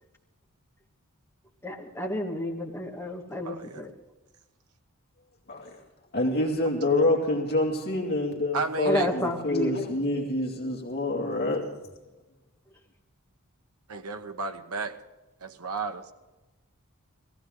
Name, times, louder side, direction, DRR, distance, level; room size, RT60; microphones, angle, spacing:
voice 1, 1.6-3.9 8.9-9.8, equal, 10° left, -1 dB, 1.9 m, -30 dB
voice 2, 3.4-3.9 7.0-7.1 8.5-9.1 13.9-15.0 15.4-16.1, right 4 dB, 85° right, 6 dB, 1.1 m, -33 dB
voice 3, 6.1-11.8, left 2 dB, 45° left, 0 dB, 2.5 m, -27 dB
17.5 x 15.5 x 3.8 m, 1.1 s
head